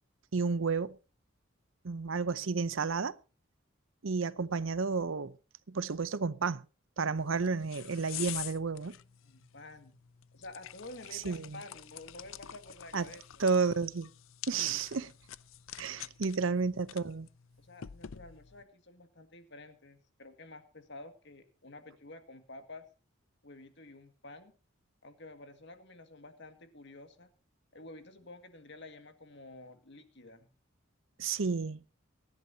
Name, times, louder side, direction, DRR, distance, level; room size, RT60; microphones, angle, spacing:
voice 1, 0.3-1.0 1.8-3.2 4.0-5.3 5.7-6.6 7.0-9.0 11.1-11.6 12.9-13.1 13.4-14.1 14.5-15.1 15.8-17.3 31.2-31.8, right 4 dB, 70° right, 0.7 m, -31 dB
sound 1, 7.2-18.6, left 12 dB, 75° left, 0.5 m, -47 dB
voice 2, 9.2-10.0 10.3-13.2 17.6-22.8 23.4-24.5 25.0-27.3 27.7-30.5, left 2 dB, 55° left, 2.1 m, -50 dB
24.0 x 11.0 x 2.8 m
head